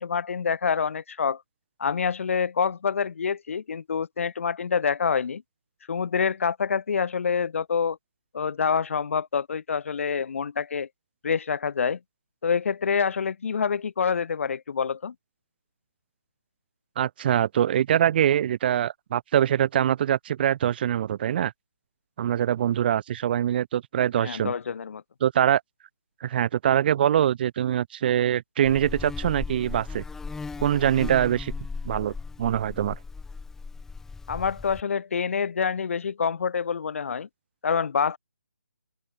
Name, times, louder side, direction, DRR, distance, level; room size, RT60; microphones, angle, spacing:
voice 1, 0.0-1.4 1.8-5.4 5.9-8.0 8.3-10.9 11.2-12.0 12.4-15.1 24.2-25.0 34.3-37.3 37.6-38.2, left 6 dB, 55° left, 6.6 m, -26 dB
voice 2, 17.0-21.5 22.2-24.5 25.2-25.6 26.2-30.0 30.6-31.5 31.8-33.0, right 10 dB, 35° right, 6.6 m, -23 dB
Buzz, 28.6-34.8, left 4 dB, 5° left, 7.0 m, -37 dB
open air
figure-of-eight pair, 150°, 9 cm